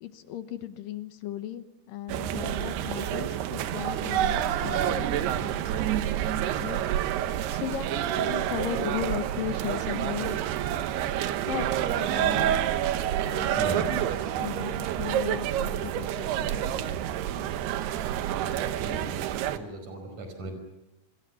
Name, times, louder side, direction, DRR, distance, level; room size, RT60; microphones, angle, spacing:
voice 1, 0.0-5.9 6.6-6.9 7.5-10.4 11.4-12.7 13.3-14.1 14.4-17.0 17.4-17.5, left 11 dB, 70° left, 10 dB, 2.4 m, -37 dB
sound 1, 2.1-19.6, right 11 dB, 80° right, 3.1 m, -28 dB
voice 2, 13.6-13.9 18.8-19.1 19.5-20.5, right 1 dB, 50° right, 6 dB, 6.4 m, -36 dB
28.0 x 21.5 x 7.1 m, 0.92 s
omnidirectional pair, 4.6 m